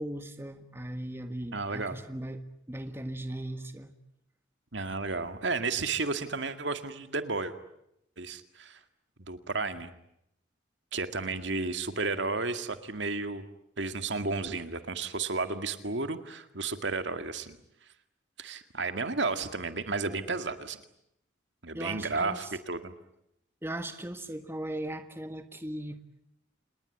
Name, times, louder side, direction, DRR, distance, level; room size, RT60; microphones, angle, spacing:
voice 1, 0.0-3.9 21.7-22.5 23.6-26.0, right 1 dB, 10° right, 8 dB, 1.5 m, -38 dB
voice 2, 1.5-2.0 4.7-7.5 8.2-8.8 9.2-9.9 10.9-13.4 13.8-17.6 18.4-20.8 21.6-22.9, right 3 dB, 70° right, 9 dB, 2.0 m, -32 dB
28.0 x 20.5 x 9.7 m, 0.78 s
head